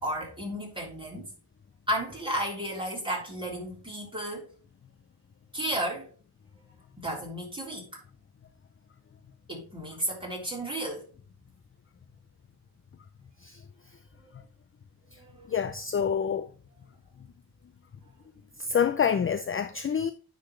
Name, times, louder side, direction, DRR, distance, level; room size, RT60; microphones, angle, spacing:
voice 1, 0.0-1.3 1.9-4.5 5.5-6.1 7.0-7.9 9.5-11.1 14.2-14.3 15.2-15.5, right 1 dB, 10° right, 3.7 m, -33 dB
voice 2, 15.5-16.5 18.6-20.1, left 7 dB, 35° left, 0.4 m, -27 dB
9.8 x 4.0 x 3.1 m
wide cardioid pair, 65°, 40 cm